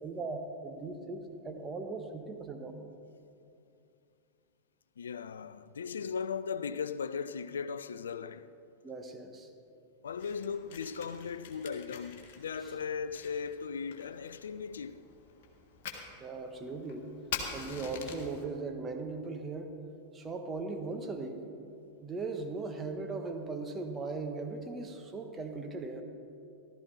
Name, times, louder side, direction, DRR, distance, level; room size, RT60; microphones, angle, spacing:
voice 1, 0.0-2.8 8.8-9.5 16.2-17.1 17.5-19.7 20.1-21.4 22.0-26.0, right 3 dB, 20° right, 1.3 m, -38 dB
voice 2, 5.0-8.5 10.0-15.0, left 6 dB, 70° left, 0.3 m, -37 dB
Fire, 10.0-18.4, left 6 dB, 50° left, 1.7 m, -45 dB
14.5 x 13.0 x 4.2 m
figure-of-eight pair, 90°, 0 cm